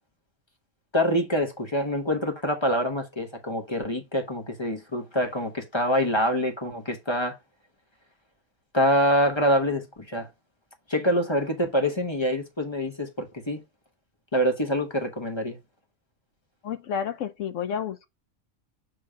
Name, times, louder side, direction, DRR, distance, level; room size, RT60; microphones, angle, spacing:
voice 1, 0.9-7.4 8.7-10.3 10.9-13.6 14.3-15.6, equal, 20° left, 1.0 m, -25 dB
voice 2, 16.6-18.1, left 8 dB, 70° left, 1.0 m, -30 dB
7.1 x 3.1 x 4.9 m
omnidirectional pair, 1.4 m